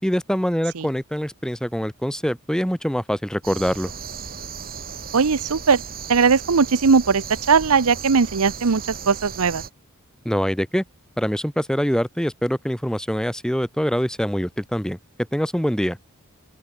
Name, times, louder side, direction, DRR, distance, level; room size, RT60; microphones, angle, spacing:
voice 1, 0.0-3.9 10.2-10.8 11.2-15.0 15.3-16.0, equal, 5° left, 5.1 m, -24 dB
sound 1, 3.4-9.7, right 6 dB, 40° right, 2.7 m, -35 dB
voice 2, 5.1-5.8 6.1-9.6, right 5 dB, 80° right, 0.8 m, -19 dB
open air
head